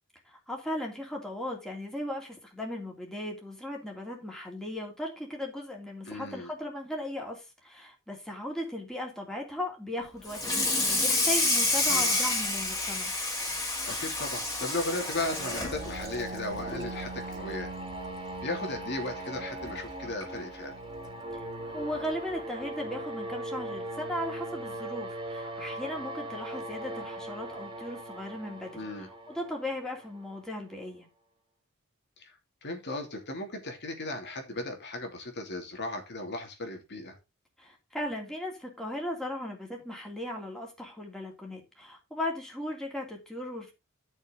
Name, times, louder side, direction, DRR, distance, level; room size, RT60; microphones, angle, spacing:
voice 1, 0.2-13.1 21.3-21.4 21.7-28.9 29.3-31.1 37.6-43.7, left 1 dB, 5° left, 3.0 m, -37 dB
voice 2, 6.1-6.5 11.9-12.2 13.8-17.7 18.4-20.7 28.7-29.1 32.2-37.2, left 2 dB, 55° left, 2.8 m, -36 dB
Water tap faucet / Sink (filling or washing), 10.3-16.9 17.3-17.6 17.9-18.0 18.4-18.5 19.6-19.7 20.2-20.4, left 2 dB, 20° left, 3.7 m, -29 dB
sound 1, 14.8-30.6, right 1 dB, 25° right, 2.8 m, -39 dB
12.0 x 6.5 x 3.9 m
head